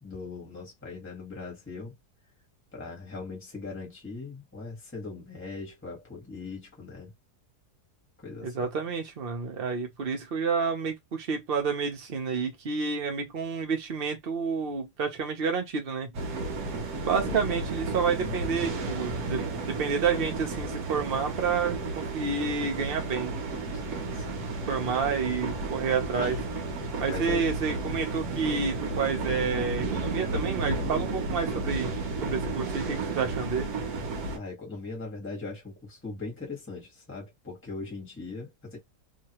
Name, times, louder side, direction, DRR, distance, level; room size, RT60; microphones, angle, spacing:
voice 1, 0.0-1.9 2.7-7.1 8.2-8.7 17.2-17.4 23.7-24.5 26.2-26.4 27.1-27.5 31.3-31.4 34.3-38.8, left 3 dB, 10° left, 1.3 m, -40 dB
voice 2, 8.4-16.1 17.0-23.3 24.7-26.4 27.0-31.9 32.2-33.7, right 5 dB, 40° right, 1.0 m, -29 dB
sound 1, 16.1-34.4, right 3 dB, 65° right, 1.4 m, -32 dB
3.0 x 2.7 x 2.9 m
omnidirectional pair, 1.8 m